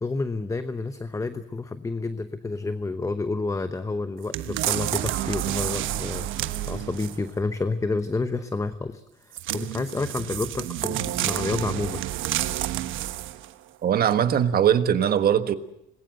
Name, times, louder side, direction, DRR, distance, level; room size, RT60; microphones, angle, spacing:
voice 1, 0.0-12.0, left 3 dB, 15° left, 10 dB, 0.9 m, -30 dB
sound 1, 4.3-7.3 9.3-13.5 14.1-14.2, right 14 dB, 85° right, 1.2 m, -29 dB
voice 2, 13.8-15.6, right 9 dB, 50° right, 10 dB, 1.5 m, -21 dB
26.5 x 21.0 x 7.7 m, 0.76 s
cardioid pair, 135°, 20 cm